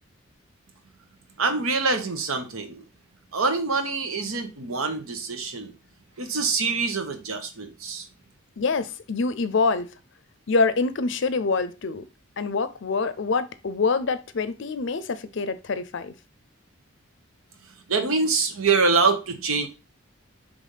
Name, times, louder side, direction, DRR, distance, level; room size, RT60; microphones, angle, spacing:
voice 1, 1.4-2.8 3.3-5.7 6.2-8.1 17.9-19.7, right 4 dB, 85° right, 1.2 m, -25 dB
voice 2, 8.6-9.9 10.5-12.0 12.4-16.1, left 4 dB, 60° left, 0.5 m, -25 dB
5.1 x 3.5 x 5.5 m
head